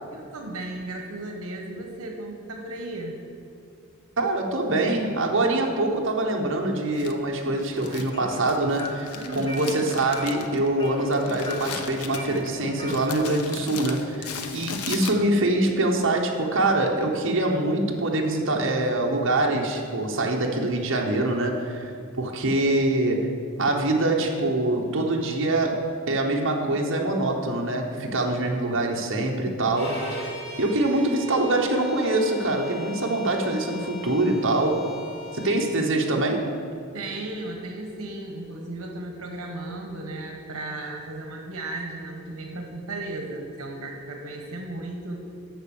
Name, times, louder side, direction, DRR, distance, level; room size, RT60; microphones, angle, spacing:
voice 1, 0.1-3.2 9.1-9.6 36.9-45.2, right 2 dB, 80° right, 2 dB, 1.2 m, -35 dB
voice 2, 4.2-21.9 22.2-23.3 23.6-25.8 26.1-34.8 35.3-36.4, right 2 dB, 55° right, 0 dB, 1.1 m, -24 dB
Crumpling crinkling, 6.9-15.6, left 6 dB, 85° left, 0.8 m, -39 dB
sound 1, 7.8-13.1, equal, 20° left, 0.9 m, -41 dB
Bowed string instrument, 29.7-35.7, left 1 dB, 45° left, 2.3 m, -40 dB
9.2 x 6.2 x 7.1 m, 2.4 s
head